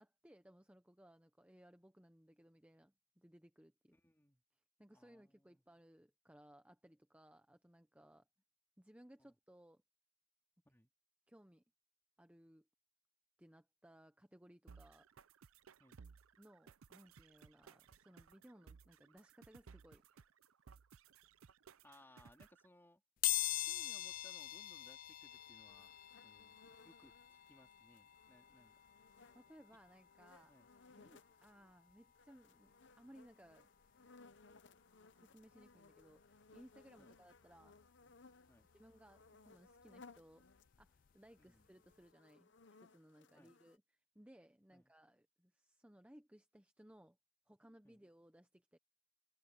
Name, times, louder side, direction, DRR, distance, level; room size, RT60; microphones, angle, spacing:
voice 1, 0.0-3.9 4.8-8.2 8.8-9.8 11.3-11.6 12.2-12.7 13.4-15.1 16.4-20.2 29.3-30.5 30.9-33.7 35.1-37.8 38.7-40.5 40.8-42.5 42.8-47.2 47.5-48.8, equal, 5° right, 0.8 m, -63 dB
voice 2, 3.9-4.4 4.9-5.6 9.2-9.3 10.6-10.9 15.8-16.0 21.8-23.0 23.6-26.0 26.2-28.7 30.4-30.7 37.0-37.2 38.5-38.6 41.4-41.7 43.3-43.5 44.7-44.9 47.8-48.0, left 1 dB, 10° left, 3.3 m, -67 dB
sound 1, 14.7-22.7, right 5 dB, 85° right, 0.6 m, -61 dB
sound 2, 23.2-33.9 34.4-34.5 35.6-35.7 36.0-38.1 38.4-41.1 41.4-41.6 41.9-42.0, left 15 dB, 40° left, 0.3 m, -45 dB
sound 3, 25.3-31.8 32.2-40.8 41.1-43.8, left 4 dB, 55° left, 0.8 m, -65 dB
head